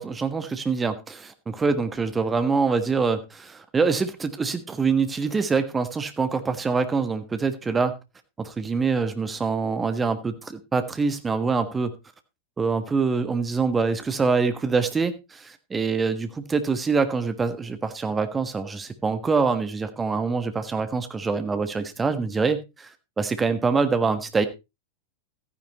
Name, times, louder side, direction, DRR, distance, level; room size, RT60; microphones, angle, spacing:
voice 1, 0.0-7.9 8.4-11.9 12.6-22.9 23.2-24.5, right 4 dB, 15° right, 1.4 m, -25 dB
14.0 x 9.8 x 3.0 m
figure-of-eight pair, 90°, 0 cm